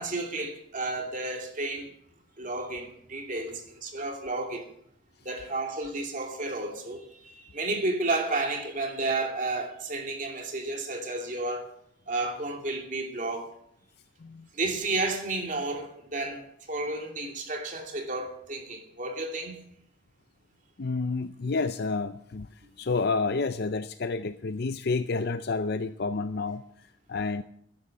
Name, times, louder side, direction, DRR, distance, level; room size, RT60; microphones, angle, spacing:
voice 1, 0.0-1.9 2.4-4.7 5.2-11.7 12.1-13.5 14.5-19.7, right 2 dB, 40° right, 3 dB, 2.7 m, -32 dB
voice 2, 20.8-27.4, left 4 dB, 55° left, 11 dB, 0.5 m, -30 dB
12.5 x 10.5 x 7.7 m, 0.71 s
head